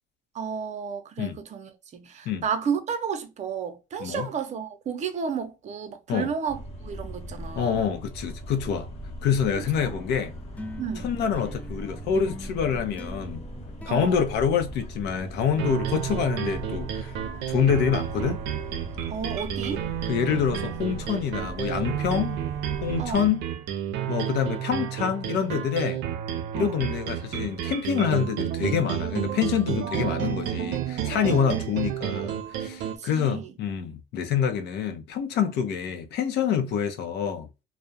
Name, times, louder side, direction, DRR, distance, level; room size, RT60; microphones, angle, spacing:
voice 1, 0.3-7.9 10.8-11.1 13.9-14.1 19.1-19.8 23.0-23.2 26.5-26.7 29.8-31.6 32.8-33.5, right 6 dB, 45° right, 0.6 m, -32 dB
sound 1, 6.5-23.2, equal, 40° left, 0.8 m, -39 dB
voice 2, 7.5-8.9 9.2-10.3 11.0-13.4 13.9-17.1 17.5-18.4 20.1-22.4 22.8-23.4 24.1-26.0 26.6-37.5, left 7 dB, 80° left, 0.6 m, -26 dB
sound 2, 9.7-15.3, left 2 dB, 10° left, 0.3 m, -44 dB
sound 3, 15.6-33.0, right 10 dB, 90° right, 0.5 m, -31 dB
2.3 x 2.1 x 2.6 m
cardioid pair, 110°, 17 cm